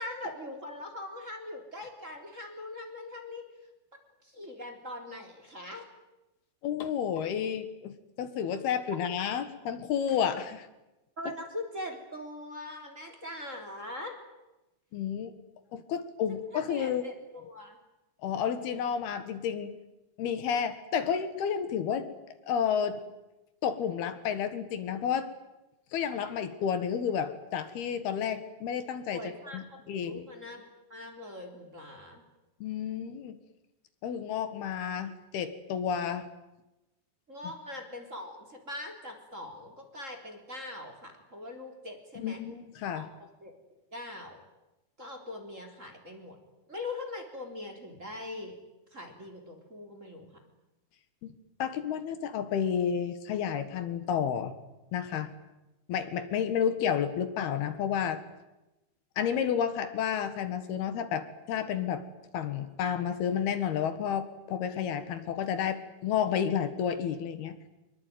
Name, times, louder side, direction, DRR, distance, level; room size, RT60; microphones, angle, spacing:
voice 1, 0.0-3.4 4.2-5.8 11.2-14.2 16.3-17.8 29.1-29.6 30.0-32.2 37.3-42.4 42.9-43.1 43.4-43.5 43.9-44.4 45.0-46.4 46.7-48.6 48.9-50.3, left 2 dB, 20° right, 4 dB, 3.6 m, -41 dB
voice 2, 6.6-10.7 14.9-15.3 15.7-17.0 18.2-19.7 20.2-22.1 22.5-23.0 23.6-25.3 25.9-30.3 32.6-33.4 34.0-36.3 42.2-43.1 51.2-51.4 51.6-54.6 54.9-55.3 55.9-58.2 59.2-62.0 62.3-67.6, left 8 dB, 75° left, 10 dB, 3.6 m, -31 dB
25.0 x 22.5 x 9.4 m, 1.0 s
omnidirectional pair, 4.6 m